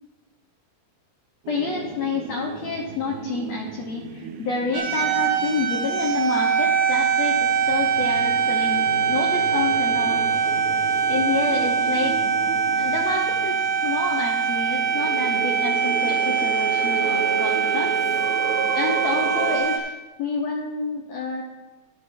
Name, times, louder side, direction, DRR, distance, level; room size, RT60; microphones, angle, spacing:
voice 1, 1.5-8.8 9.1-10.2 11.1-12.5 12.8-17.9 18.7-19.9 20.2-21.4, left 4 dB, 80° left, 0 dB, 1.5 m, -28 dB
sound 1, 1.5-7.0 7.5-19.6, right 6 dB, 85° right, 1.7 m, -34 dB
sound 2, 4.7-19.8, right 6 dB, 60° right, 2.5 m, -23 dB
12.0 x 10.5 x 3.7 m, 1.2 s
omnidirectional pair, 4.5 m